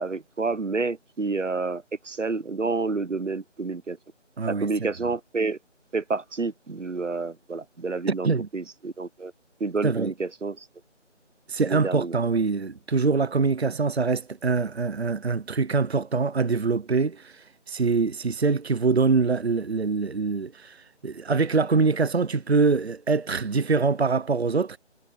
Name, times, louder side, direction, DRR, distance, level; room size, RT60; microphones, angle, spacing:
voice 1, 0.0-4.0 4.5-5.6 5.9-9.3 9.6-10.7 11.5-12.2, right 3 dB, 80° right, 1.1 m, -29 dB
voice 2, 4.4-4.9 8.1-8.5 9.8-10.1 11.5-20.8 21.0-24.8, right 4 dB, 60° right, 0.8 m, -24 dB
figure-of-eight pair, 165°, 36 cm